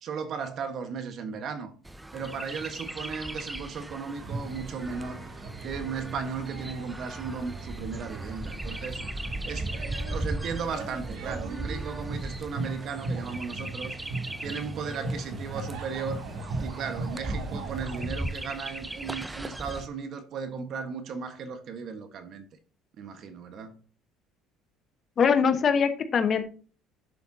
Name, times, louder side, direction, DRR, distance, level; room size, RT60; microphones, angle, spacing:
voice 1, 0.0-1.7 2.1-5.2 5.6-9.1 9.4-9.8 10.1-14.0 14.4-16.2 16.6-22.5 23.0-23.8, right 5 dB, 50° right, 1.4 m, -36 dB
Chirp tweet, 1.8-19.9, right 1 dB, 10° right, 0.5 m, -38 dB
sound 1, 4.2-18.1, right 3 dB, 85° right, 3.0 m, -38 dB
voice 2, 25.2-26.5, left 6 dB, 35° left, 1.1 m, -22 dB
11.0 x 6.8 x 2.8 m
cardioid pair, 135°, 0 cm